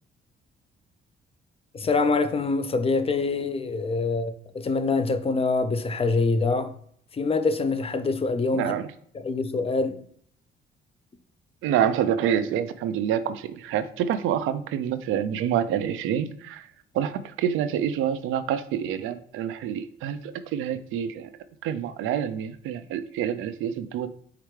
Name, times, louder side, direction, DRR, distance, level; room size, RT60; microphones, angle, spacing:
voice 1, 1.7-6.7 7.1-8.7 9.1-10.0, left 3 dB, 30° left, 0.5 m, -25 dB
voice 2, 8.5-8.9 11.6-16.6 16.9-21.3 21.6-24.1, right 9 dB, 85° right, 0.4 m, -27 dB
4.7 x 3.2 x 3.1 m
cardioid pair, 90°, 20 cm